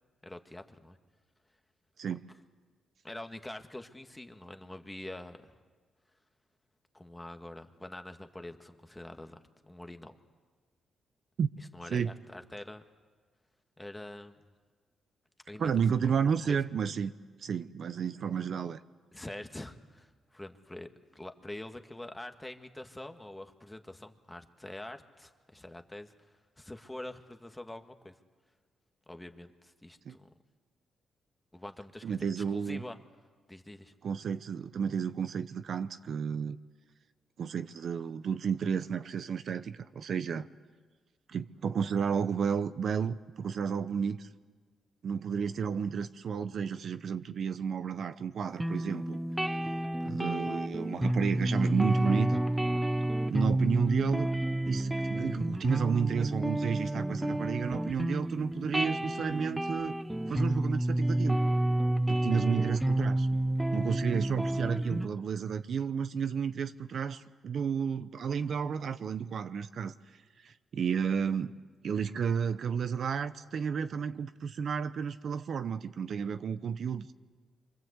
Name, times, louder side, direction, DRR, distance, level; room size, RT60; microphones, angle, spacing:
voice 1, 0.2-1.0 2.1-2.2 3.0-5.6 6.9-9.4 9.6-10.2 11.7-12.8 13.8-14.3 15.5-15.7 16.0-16.1 16.5-16.6 19.1-20.9 21.2-26.1 26.6-28.1 29.1-30.3 31.5-33.0 33.5-33.9 50.0-50.1 64.4-64.8, left 1 dB, 10° left, 6 dB, 1.7 m, -45 dB
voice 2, 15.6-17.1 17.4-18.8 30.0-30.2 32.0-32.8 34.0-36.6 37.4-40.5 41.3-44.3 45.0-49.2 50.1-52.4 53.3-54.3 54.7-60.0 60.3-61.4 62.1-63.3 63.7-69.9 70.4-71.5 71.8-77.1, right 7 dB, 60° right, 11 dB, 0.8 m, -32 dB
sound 1, 48.6-65.1, right 1 dB, 10° right, 0.9 m, -30 dB
26.5 x 24.5 x 8.2 m, 1.4 s
cardioid pair, 90°, 0 cm